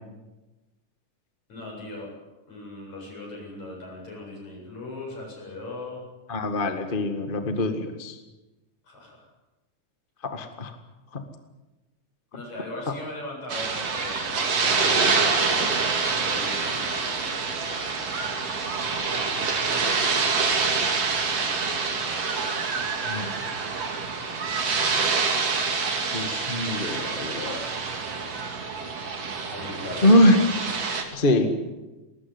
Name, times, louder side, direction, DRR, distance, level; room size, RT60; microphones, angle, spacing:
voice 1, 1.5-2.1 2.5-6.0 8.8-9.3 12.3-17.9 18.3-20.6 29.5-30.4, left 2 dB, 65° left, -2 dB, 9.4 m, -40 dB
voice 2, 6.3-8.2 10.3-10.7 11.1-11.2 23.1-23.3 26.1-27.6 30.0-30.4 31.1-31.6, left 1 dB, 25° left, 7 dB, 1.3 m, -23 dB
sound 1, 13.5-31.0, right 4 dB, 55° right, 3.6 m, -26 dB
20.5 x 19.0 x 9.6 m, 1.1 s
omnidirectional pair, 3.5 m